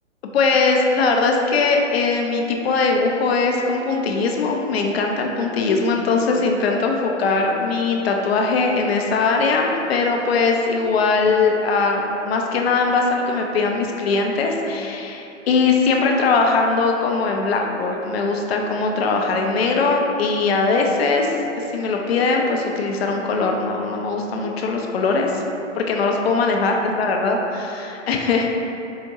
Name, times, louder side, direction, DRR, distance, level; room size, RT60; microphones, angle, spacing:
voice 1, 0.3-25.4 25.8-28.5, left 4 dB, 55° left, 1 dB, 0.5 m, -20 dB
4.6 x 2.1 x 2.8 m, 3.0 s
hypercardioid pair, 130°, 38 cm